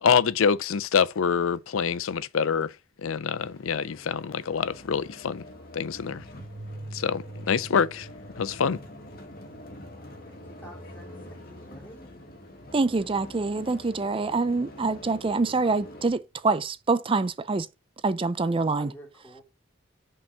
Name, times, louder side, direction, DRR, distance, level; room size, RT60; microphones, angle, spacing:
voice 1, 0.0-2.7 3.0-5.4 5.7-6.2 6.9-8.1 8.4-8.8, left 6 dB, 75° left, 0.5 m, -25 dB
sound 1, 3.4-16.1, left 1 dB, 45° left, 2.0 m, -46 dB
sound 2, 5.8-14.2, right 1 dB, 80° right, 1.4 m, -47 dB
voice 2, 10.3-12.2 18.6-19.4, right 1 dB, 10° left, 3.1 m, -49 dB
voice 3, 12.7-17.7 18.0-18.9, right 3 dB, 25° right, 0.4 m, -25 dB
5.5 x 5.4 x 5.9 m
head